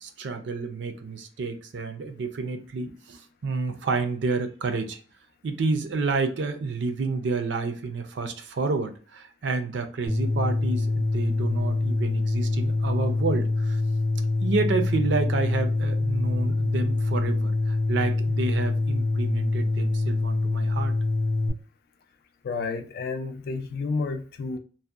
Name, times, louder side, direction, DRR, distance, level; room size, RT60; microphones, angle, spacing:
voice 1, 0.0-5.0 5.4-13.8 14.4-20.9, right 4 dB, 70° right, 0.4 m, -29 dB
sound 1, 10.1-21.5, left 2 dB, 10° left, 0.6 m, -25 dB
voice 2, 22.4-24.6, left 4 dB, 55° left, 0.4 m, -30 dB
2.6 x 2.1 x 2.3 m
head